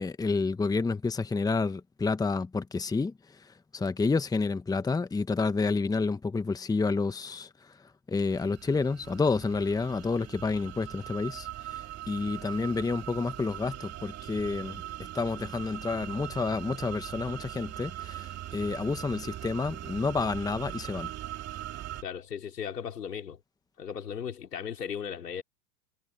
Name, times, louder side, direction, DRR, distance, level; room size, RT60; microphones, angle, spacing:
voice 1, 0.0-3.1 3.7-7.5 8.1-14.8 15.1-21.1, left 4 dB, 10° left, 1.3 m, -29 dB
sound 1, 8.3-22.0, right 13 dB, 30° right, 3.0 m, -41 dB
voice 2, 22.0-23.4 23.8-25.4, left 8 dB, 85° left, 4.9 m, -36 dB
hypercardioid pair, 115°, 47 cm